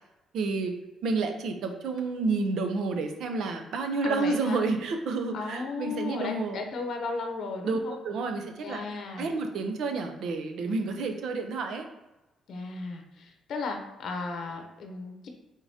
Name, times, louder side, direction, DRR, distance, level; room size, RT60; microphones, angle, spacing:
voice 1, 0.3-0.7 1.0-6.6 7.6-8.8 9.2-11.9, right 3 dB, 75° right, 5 dB, 0.6 m, -30 dB
voice 2, 4.0-4.6 5.3-7.9 8.6-9.3 12.5-15.3, left 3 dB, 65° left, 3 dB, 0.7 m, -35 dB
4.7 x 3.7 x 2.7 m, 1.0 s
cardioid pair, 90°, 0 cm